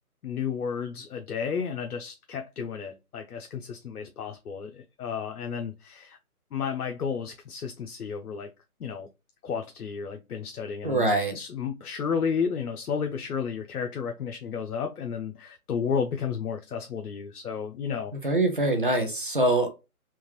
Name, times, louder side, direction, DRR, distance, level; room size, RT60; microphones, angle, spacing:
voice 1, 0.2-6.2 6.5-8.5 8.8-9.1 9.4-11.0 11.3-18.1, left 6 dB, 80° left, 0.7 m, -32 dB
voice 2, 10.8-11.4 18.1-19.7, right 2 dB, 35° right, 0.7 m, -24 dB
3.6 x 2.8 x 3.0 m
hypercardioid pair, 180°, 45 cm